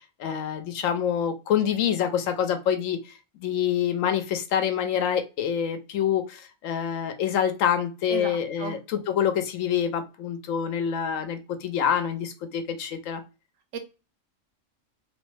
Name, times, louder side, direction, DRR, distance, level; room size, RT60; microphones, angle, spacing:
voice 1, 0.2-3.1 3.4-13.2, left 8 dB, 75° left, 0.9 m, -26 dB
voice 2, 8.1-8.8 13.7-13.8, right 5 dB, 75° right, 1.0 m, -34 dB
2.9 x 2.0 x 3.1 m
omnidirectional pair, 1.4 m